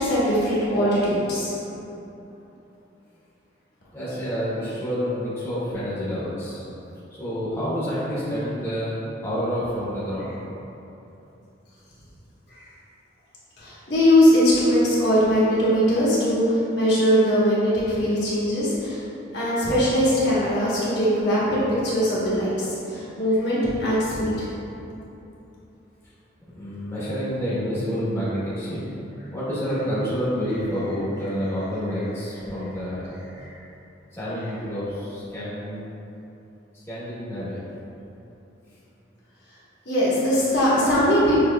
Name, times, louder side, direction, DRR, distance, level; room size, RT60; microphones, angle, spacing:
voice 1, 0.0-1.5 12.6-12.7 13.6-19.0 19.3-22.5 22.9-24.5 33.4-33.5 39.8-41.4, equal, 60° left, -9 dB, 1.1 m, -21 dB
voice 2, 3.9-6.7 7.2-9.0 9.2-10.4 26.5-28.9 29.3-33.1 34.2-35.8 36.9-37.6, equal, 15° left, -11 dB, 0.9 m, -28 dB
6.4 x 2.9 x 2.2 m, 2.9 s
head